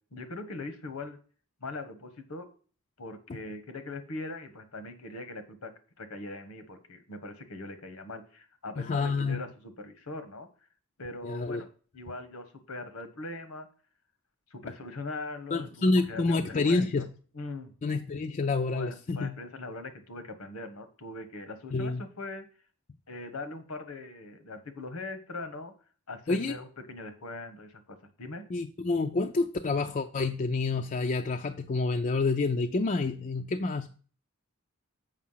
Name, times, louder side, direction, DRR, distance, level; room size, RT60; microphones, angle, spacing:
voice 1, 0.1-1.2 1.6-2.5 3.0-5.7 6.0-10.5 11.0-11.7 11.9-13.7 14.5-17.0 17.3-17.7 18.7-22.4 23.1-25.7 26.1-28.4, left 2 dB, 85° left, 9 dB, 1.3 m, -41 dB
voice 2, 8.8-9.4 11.2-11.6 15.5-17.1 17.8-19.4 21.7-22.0 26.3-26.6 28.5-33.9, left 3 dB, 35° left, 6 dB, 0.4 m, -28 dB
7.3 x 5.4 x 5.6 m, 0.41 s
head